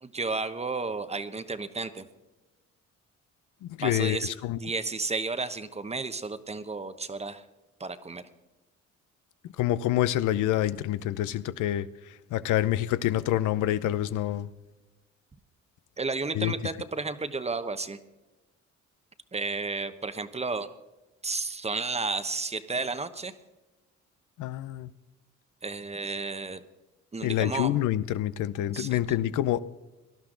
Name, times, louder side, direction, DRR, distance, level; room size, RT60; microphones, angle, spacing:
voice 1, 0.0-2.1 3.8-4.3 4.6-7.4 7.8-8.2 16.0-18.0 19.3-20.7 21.2-23.3 25.6-26.6 27.1-27.7 28.7-29.0, right 3 dB, 20° right, 1.0 m, -32 dB
voice 2, 3.6-4.6 9.6-11.9 12.3-14.5 16.3-16.5 24.4-24.9 27.2-29.6, left 13 dB, 80° left, 0.7 m, -27 dB
18.5 x 11.5 x 3.9 m
cardioid pair, 90°, 30 cm